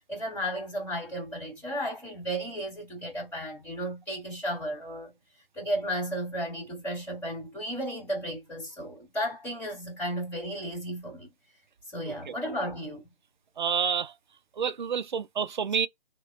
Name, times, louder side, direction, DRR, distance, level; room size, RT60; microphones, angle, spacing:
voice 1, 0.1-5.1 5.5-11.3 11.9-13.0, equal, 5° left, 1.2 m, -34 dB
voice 2, 13.6-14.2 14.6-15.9, right 7 dB, 55° right, 0.4 m, -29 dB
3.3 x 2.1 x 2.4 m
hypercardioid pair, 160°, 29 cm